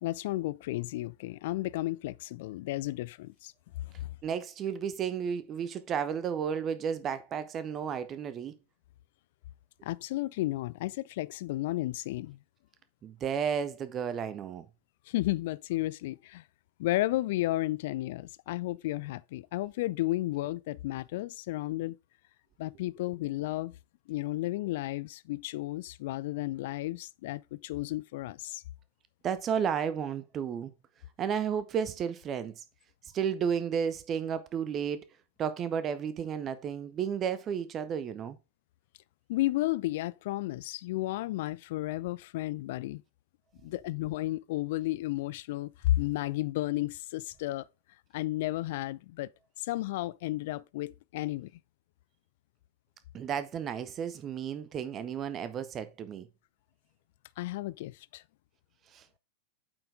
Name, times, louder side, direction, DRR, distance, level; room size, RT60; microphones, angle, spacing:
voice 1, 0.0-3.5 9.8-12.4 15.1-16.4 16.8-22.0 22.6-23.8 24.1-28.6 39.3-43.0 43.6-47.6 48.1-49.3 49.6-51.5 57.4-58.2, left 17 dB, 50° left, 0.3 m, -33 dB
voice 2, 4.2-8.6 13.0-14.7 29.2-30.7 31.2-32.6 33.1-35.0 35.4-38.4 53.1-56.3 58.9-59.2, right 7 dB, 30° right, 0.6 m, -32 dB
8.6 x 4.5 x 3.4 m
figure-of-eight pair, 90°, 0 cm